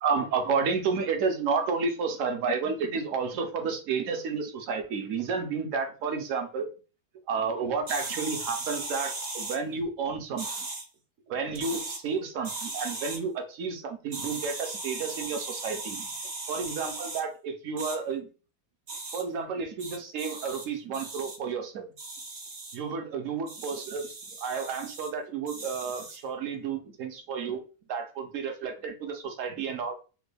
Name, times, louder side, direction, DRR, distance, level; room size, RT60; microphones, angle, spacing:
voice 1, 0.0-6.7 7.3-10.7 11.3-16.1 16.5-18.3 19.1-21.9 22.7-27.6 27.9-30.0, right 5 dB, 70° right, 5 dB, 1.0 m, -31 dB
sound 1, 7.9-9.6 10.4-10.8 11.5-12.0 12.4-13.2 14.1-17.2 17.8-18.0 18.9-19.2 19.8-20.7 20.9-21.4 22.0-22.8 23.5-25.1 25.5-26.2, right 3 dB, 50° right, 0.5 m, -37 dB
3.2 x 2.2 x 3.3 m, 0.35 s
omnidirectional pair, 1.5 m